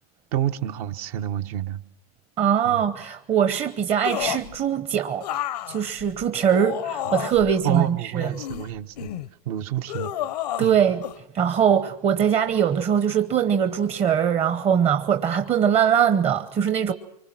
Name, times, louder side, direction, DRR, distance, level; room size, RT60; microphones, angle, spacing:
voice 1, 0.3-1.8 2.6-2.8 7.1-7.2 7.4-9.1 9.4-10.1 10.6-10.8, right 12 dB, 65° right, 1.2 m, -29 dB
voice 2, 2.4-5.3 5.7-8.3 10.6-11.0 11.3-16.9, right 8 dB, 30° right, 0.9 m, -22 dB
sound 1, 4.0-4.6 5.2-7.5 8.2-9.3 9.9-10.7 11.0-11.2, left 11 dB, 85° left, 1.0 m, -30 dB
25.0 x 24.5 x 6.1 m
supercardioid pair, 120°, 20 cm